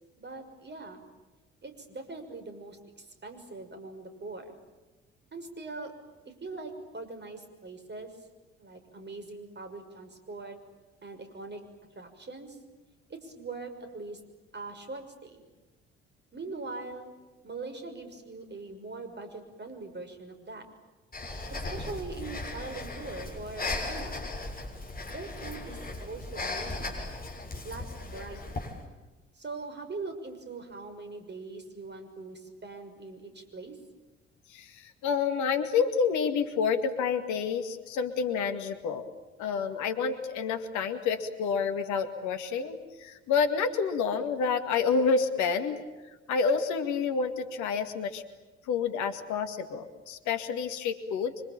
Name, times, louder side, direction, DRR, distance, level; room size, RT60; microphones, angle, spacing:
voice 1, 0.2-1.0 1.6-4.6 5.3-5.9 6.3-8.1 8.6-10.6 11.0-11.6 11.9-12.6 13.1-14.2 14.5-15.4 16.3-17.1 17.4-20.6 21.5-24.3 25.1-27.0 27.6-28.6 29.3-33.8, right 3 dB, 35° right, 7 dB, 6.2 m, -42 dB
Breathing, 21.1-28.8, left 2 dB, 30° left, 6.9 m, -37 dB
voice 2, 34.5-39.1 39.4-45.8 46.3-48.2 48.7-51.4, left 5 dB, 60° left, 7 dB, 2.2 m, -29 dB
26.0 x 25.5 x 8.9 m, 1.2 s
figure-of-eight pair, 45°, 32 cm